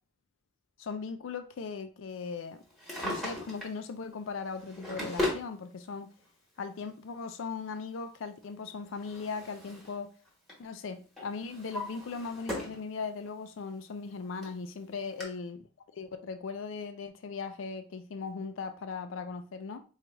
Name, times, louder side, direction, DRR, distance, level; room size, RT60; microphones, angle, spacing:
voice 1, 0.8-2.6 3.0-6.1 6.6-10.1 10.6-15.6 15.9-19.8, left 5 dB, 75° left, 0.4 m, -38 dB
Drawer open or close, 2.7-3.8 4.5-5.5 6.6-6.7 8.4-10.0 10.3-10.6 11.2-12.8 13.3-13.4 14.1-14.2 14.4-14.5 15.2-15.3, left 1 dB, ahead, 1.2 m, -37 dB
4.5 x 2.4 x 3.0 m
head